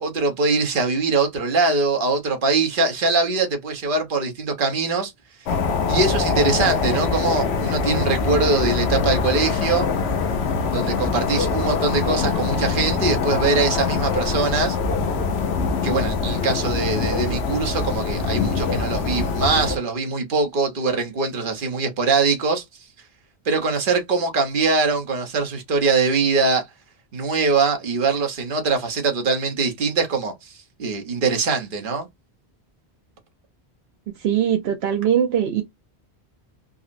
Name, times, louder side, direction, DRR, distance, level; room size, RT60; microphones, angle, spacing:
voice 1, 0.0-5.1 5.9-9.9 10.7-14.8 15.8-22.6 23.4-26.6 27.1-32.1, right 4 dB, 55° right, 1.0 m, -22 dB
sound 1, 5.5-19.8, left 5 dB, 85° left, 0.9 m, -23 dB
voice 2, 34.2-35.6, right 9 dB, 80° right, 0.8 m, -21 dB
3.8 x 2.0 x 2.5 m
omnidirectional pair, 1.1 m